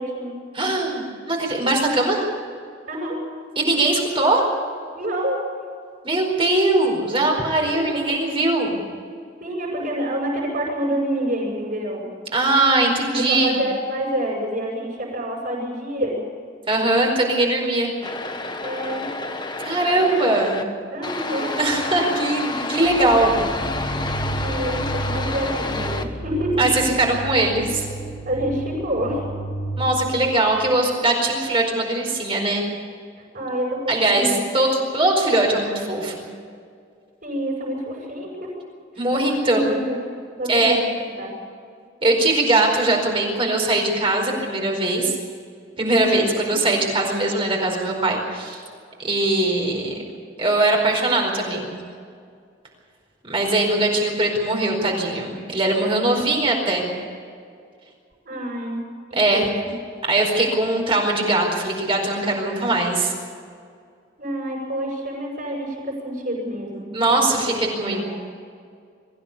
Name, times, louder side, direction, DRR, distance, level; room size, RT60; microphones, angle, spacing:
voice 1, 0.0-0.4 2.9-3.2 5.0-5.4 7.6-8.1 9.4-12.1 13.1-16.2 18.6-19.1 20.9-21.6 24.4-26.7 28.2-29.2 33.3-34.5 37.2-38.5 39.1-40.1 40.4-40.9 41.2-41.4 46.0-46.2 56.1-56.2 58.2-58.8 59.3-59.8 64.2-67.2 67.5-68.1, right 1 dB, 45° right, -6 dB, 7.8 m, -27 dB
voice 2, 0.5-2.2 3.6-4.4 6.0-8.8 12.3-13.6 16.7-17.9 19.6-20.6 21.6-23.3 26.6-27.9 29.8-32.6 33.9-36.1 39.0-39.7 40.5-40.8 42.0-45.2 45.8-48.6 49.0-50.0 50.4-51.7 53.2-56.9 59.1-59.4 60.1-63.1 66.9-68.1, right 2 dB, 30° right, 0 dB, 4.7 m, -21 dB
sound 1, 18.0-20.6 21.0-26.0, left 3 dB, 25° left, 1.3 m, -30 dB
sound 2, 22.8-30.7, right 1 dB, 45° left, 5.4 m, -31 dB
23.5 x 15.5 x 8.5 m, 2.2 s
head